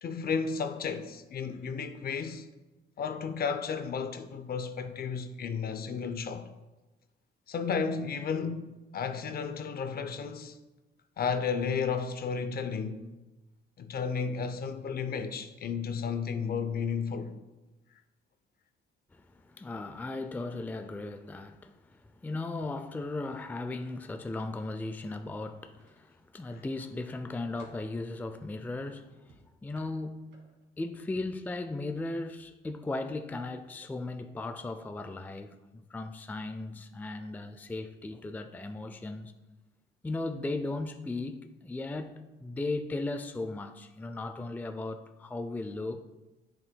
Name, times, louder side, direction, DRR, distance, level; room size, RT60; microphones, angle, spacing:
voice 1, 0.0-2.5 3.0-6.5 7.5-10.6 11.2-13.1 13.8-17.3, left 6 dB, 50° left, 0.6 m, -33 dB
voice 2, 19.1-30.3 30.8-39.3 40.0-46.0, left 2 dB, 10° left, 0.4 m, -37 dB
sound 1, 25.8-26.5 27.0-27.9 29.3-30.7 31.1-31.4 32.3-32.5 32.9-33.0, right 2 dB, 65° right, 2.4 m, -58 dB
9.4 x 5.8 x 2.2 m
cardioid pair, 90°, 20 cm